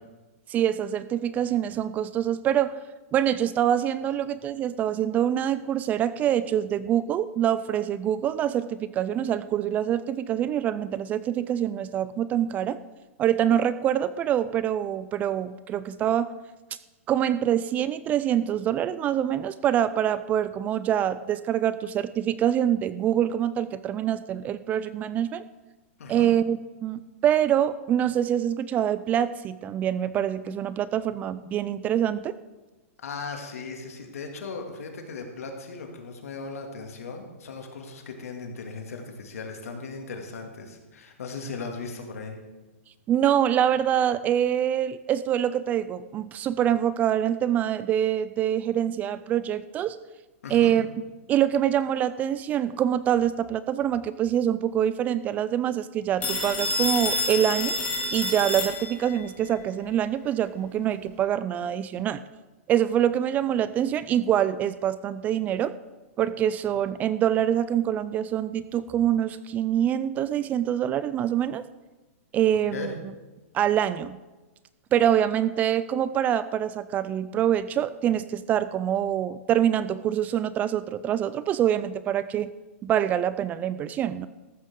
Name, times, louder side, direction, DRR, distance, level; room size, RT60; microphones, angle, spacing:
voice 1, 0.5-2.7 3.1-12.8 13.2-16.3 17.1-25.4 26.1-32.3 43.1-50.0 50.5-50.9 51.3-57.8 58.1-62.2 62.7-65.7 66.2-71.6 72.3-72.9 73.5-74.2 74.9-82.5 82.8-84.3, right 10 dB, 20° right, 15 dB, 0.3 m, -25 dB
voice 2, 26.0-26.3 33.0-42.4 50.4-50.7 72.7-72.9, left 4 dB, 85° left, 3 dB, 2.4 m, -37 dB
Telephone, 56.2-59.2, left 2 dB, 20° left, 2.8 m, -28 dB
14.0 x 12.5 x 3.7 m, 1.2 s
hypercardioid pair, 145°, 8 cm